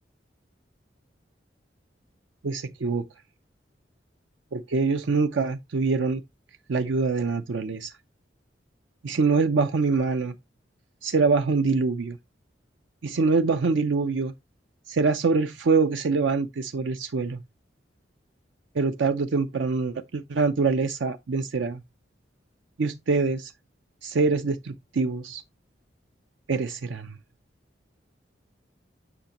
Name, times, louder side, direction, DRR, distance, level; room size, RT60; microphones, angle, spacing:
voice 1, 2.4-3.0 4.5-6.2 6.7-7.9 9.0-10.3 11.0-12.2 13.0-14.3 14.9-17.4 18.8-21.8 22.8-23.5 24.0-25.4 26.5-27.1, right 4 dB, 85° right, 0.5 m, -24 dB
7.9 x 6.0 x 2.9 m
head